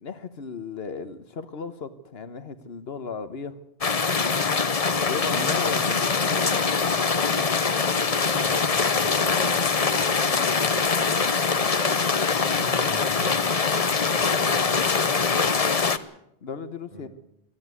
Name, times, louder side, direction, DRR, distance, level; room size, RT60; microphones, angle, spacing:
voice 1, 0.0-3.5 5.1-6.6 10.3-10.9 15.6-15.8 16.4-17.1, left 5 dB, 75° left, 11 dB, 1.3 m, -35 dB
sound 1, 3.8-16.0, left 5 dB, 40° left, 0.9 m, -23 dB
voice 2, 8.1-10.2 12.3-13.6 14.3-15.0 16.9-17.0, equal, 10° right, 0 dB, 7.7 m, -40 dB
21.5 x 13.5 x 9.6 m, 0.77 s
omnidirectional pair, 1.0 m